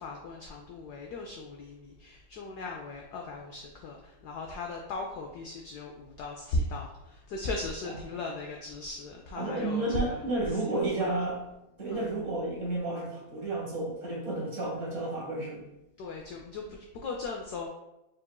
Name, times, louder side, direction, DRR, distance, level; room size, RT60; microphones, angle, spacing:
voice 1, 0.0-10.3 10.7-11.2 11.9-12.1 16.0-17.7, left 2 dB, 80° left, 1 dB, 0.8 m, -37 dB
voice 2, 9.4-11.4 11.8-15.6, right 2 dB, 45° right, -4 dB, 1.3 m, -31 dB
4.6 x 3.8 x 2.3 m, 0.92 s
omnidirectional pair, 2.2 m